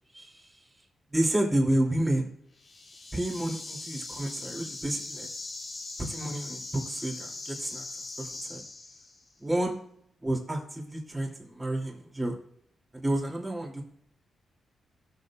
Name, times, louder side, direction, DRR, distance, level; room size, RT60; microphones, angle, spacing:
voice 1, 1.1-2.2 3.1-5.3 6.1-7.8 8.2-8.6 9.4-9.7 10.2-11.3 11.5-12.3 12.9-13.8, right 1 dB, 15° right, -1 dB, 2.8 m, -30 dB
sound 1, 2.6-9.3, left 2 dB, 45° left, 2.2 m, -41 dB
20.0 x 6.8 x 2.4 m, 0.70 s
cardioid pair, 105°, 0 cm